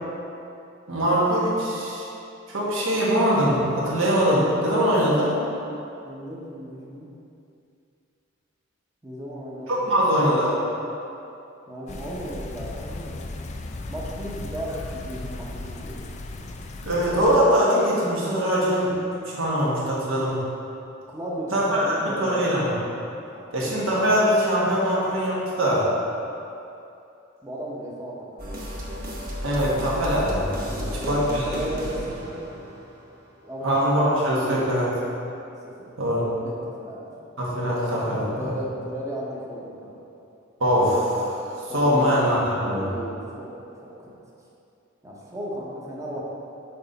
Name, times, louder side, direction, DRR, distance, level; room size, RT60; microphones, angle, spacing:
voice 1, 0.9-2.0 2.5-5.3 9.7-10.5 16.8-18.9 19.3-20.4 21.5-22.7 23.5-25.8 29.4-31.4 33.6-34.9 36.0-36.3 37.4-38.5 40.6-42.9, equal, 75° right, -6 dB, 1.4 m, -22 dB
voice 2, 6.0-7.1 9.0-10.3 11.7-13.2 13.9-16.5 21.1-22.5 23.3-23.5 27.4-28.6 30.7-32.4 33.4-33.7 34.3-34.8 35.6-35.7 36.4-37.1 38.3-39.9 41.7-44.1 45.0-46.2, right 1 dB, 15° right, -5 dB, 0.8 m, -35 dB
sound 1, 11.9-17.4, left 2 dB, 35° left, 0.3 m, -36 dB
sound 2, 28.4-33.4, equal, 45° right, 0.9 m, -34 dB
6.1 x 3.9 x 4.0 m, 2.7 s
head